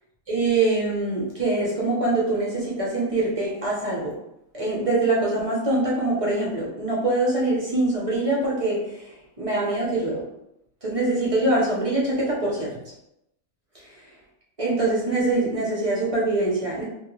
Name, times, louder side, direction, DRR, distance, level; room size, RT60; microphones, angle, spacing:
voice 1, 0.3-4.2 4.5-10.3 10.8-12.9 13.7-14.1 14.6-16.8, right 2 dB, 35° right, -6 dB, 0.6 m, -24 dB
2.7 x 2.4 x 3.0 m, 0.84 s
omnidirectional pair, 1.4 m